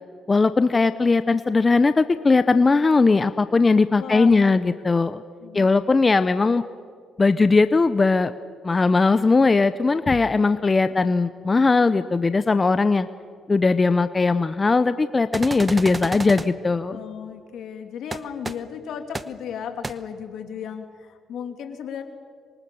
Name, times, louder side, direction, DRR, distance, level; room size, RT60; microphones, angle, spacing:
voice 1, 0.3-5.2 5.5-6.6 7.2-8.3 8.6-13.1 13.5-17.0, left 3 dB, 25° left, 12 dB, 0.7 m, -19 dB
voice 2, 4.0-4.3 5.4-5.7 16.9-22.0, left 8 dB, 75° left, 6 dB, 2.7 m, -35 dB
sound 1, 15.3-16.5 18.1-18.2 18.4-18.5 19.1-19.2 19.8-19.9, right 3 dB, 25° right, 1.0 m, -30 dB
26.5 x 23.0 x 7.0 m, 2.1 s
cardioid pair, 90°, 0 cm